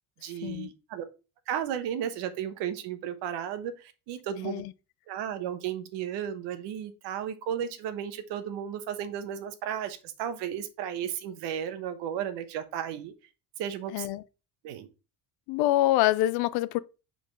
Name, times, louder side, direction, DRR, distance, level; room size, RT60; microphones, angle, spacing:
voice 1, 0.2-1.0 1.5-4.6 5.1-13.1 13.6-14.1 14.6-14.9, right 9 dB, 75° right, 1.1 m, -34 dB
voice 2, 13.9-14.2 15.5-16.8, left 15 dB, 65° left, 0.5 m, -25 dB
5.1 x 3.9 x 5.2 m
cardioid pair, 140°, 41 cm